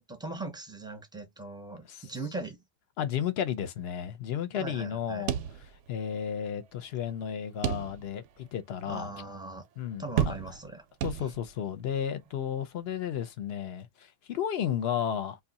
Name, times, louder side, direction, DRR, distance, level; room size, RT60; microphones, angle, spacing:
voice 1, 0.0-2.6 4.6-5.3 8.8-9.7 10.0-10.8, right 2 dB, 5° right, 0.6 m, -40 dB
voice 2, 3.0-5.4 5.9-9.1 9.8-10.4 11.0-15.4, left 9 dB, 65° left, 0.8 m, -33 dB
sound 1, 5.3-6.1 6.5-6.6 7.6-8.3 8.8-8.9 10.2-10.7 11.0-11.7, right 10 dB, 75° right, 0.9 m, -31 dB
2.7 x 2.3 x 3.9 m
omnidirectional pair, 1.3 m